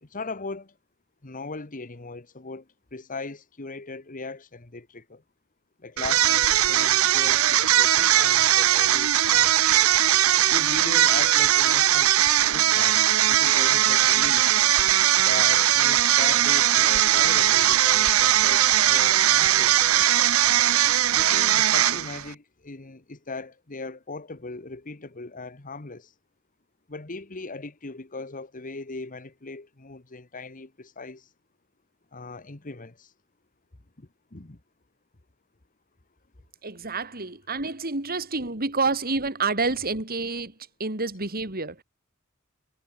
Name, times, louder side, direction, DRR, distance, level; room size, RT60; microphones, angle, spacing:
voice 1, 0.0-0.7 1.2-5.2 5.8-9.7 10.5-12.2 12.5-14.5 15.2-19.8 21.1-26.1 26.9-31.3 32.1-33.1 34.0-34.6, left 3 dB, 40° left, 1.4 m, -39 dB
sound 1, 6.0-22.3, right 12 dB, 85° right, 0.9 m, -20 dB
voice 2, 36.6-40.5 40.8-41.8, right 3 dB, 45° right, 3.9 m, -28 dB
head